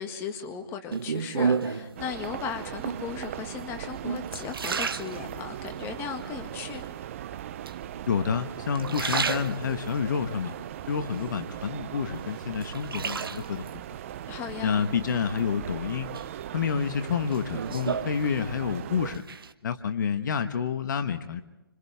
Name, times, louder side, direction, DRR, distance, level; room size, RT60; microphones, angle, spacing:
voice 1, 0.0-6.9 14.3-14.8, left 7 dB, 20° left, 6 dB, 1.8 m, -37 dB
sound 1, 0.9-2.0 2.7-3.2 3.8-5.7 6.2-6.9 7.7-8.3 8.7-10.0 10.5-11.7 12.1-13.7 15.1-15.7 16.1-18.8 19.0-19.5, right 5 dB, 75° right, 1.2 m, -32 dB
sound 2, 2.0-19.2, right 11 dB, 35° right, 0.6 m, -39 dB
voice 2, 8.0-10.5 10.9-13.6 14.6-16.1 16.5-19.2 19.6-21.4, left 7 dB, 55° left, 9 dB, 1.2 m, -28 dB
28.5 x 26.5 x 3.5 m, 1.0 s
hypercardioid pair, 145°, 12 cm